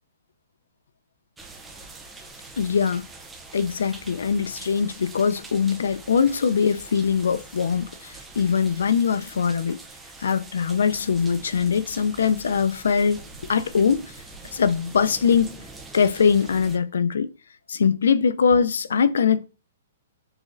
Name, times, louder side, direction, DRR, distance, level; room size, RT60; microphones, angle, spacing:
sound 1, 1.4-16.8, right 3 dB, 5° right, 0.5 m, -44 dB
voice 1, 2.6-3.1 3.5-9.8 10.2-14.0 14.5-15.6 15.9-17.3 17.7-19.5, left 6 dB, 90° left, 0.4 m, -22 dB
6.3 x 3.0 x 2.5 m
hypercardioid pair, 175°, 0 cm